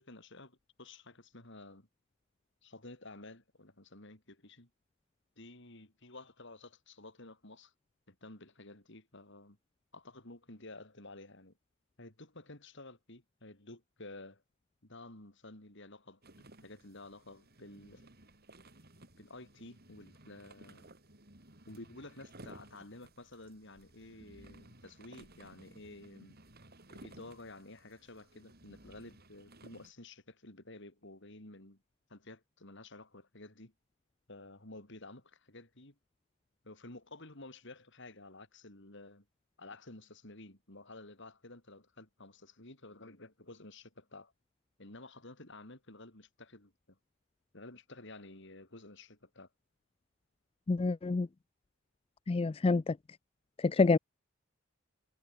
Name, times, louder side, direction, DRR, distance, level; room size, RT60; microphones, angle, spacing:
voice 1, 0.0-1.9 2.6-4.7 5.4-7.7 8.1-9.6 9.9-11.5 12.0-14.4 14.8-16.2 16.6-18.1 19.2-20.9 21.7-26.4 26.9-31.8 32.1-33.7 34.3-36.0 36.6-39.2 39.6-44.3 44.8-47.0 47.5-49.5, left 2 dB, 60° left, 4.1 m, -52 dB
sound 1, 16.2-29.9, right 1 dB, 50° right, 6.6 m, -57 dB
voice 2, 50.7-51.3 52.3-53.0 53.6-54.0, left 3 dB, 25° left, 0.4 m, -27 dB
head